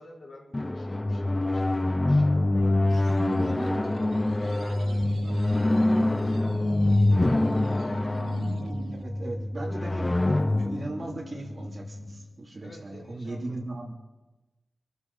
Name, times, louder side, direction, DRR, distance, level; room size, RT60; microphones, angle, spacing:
voice 1, 0.0-7.9 12.6-13.7, left 2 dB, 60° left, -2 dB, 3.8 m, -50 dB
sound 1, 0.5-12.2, left 2 dB, 20° left, 0.5 m, -25 dB
sound 2, 2.9-9.0, right 5 dB, 80° right, 0.7 m, -41 dB
voice 2, 9.0-13.9, right 2 dB, 35° right, -2 dB, 3.0 m, -37 dB
26.0 x 13.5 x 4.1 m, 1.1 s
wide cardioid pair, 120°, 0 cm